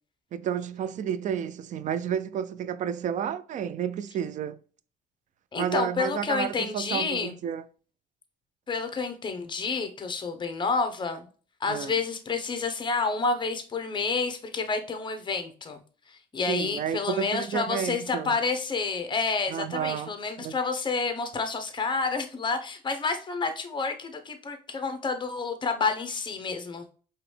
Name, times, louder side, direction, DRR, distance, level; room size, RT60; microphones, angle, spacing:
voice 1, 0.3-4.6 5.6-7.6 11.7-11.9 16.5-18.4 19.5-20.1 20.4-20.5, right 9 dB, 45° right, 0.4 m, -31 dB
voice 2, 5.5-7.3 8.7-11.3 11.6-15.8 16.1-26.8, left 4 dB, 25° left, 0.9 m, -29 dB
4.9 x 3.1 x 3.3 m
cardioid pair, 110°, 17 cm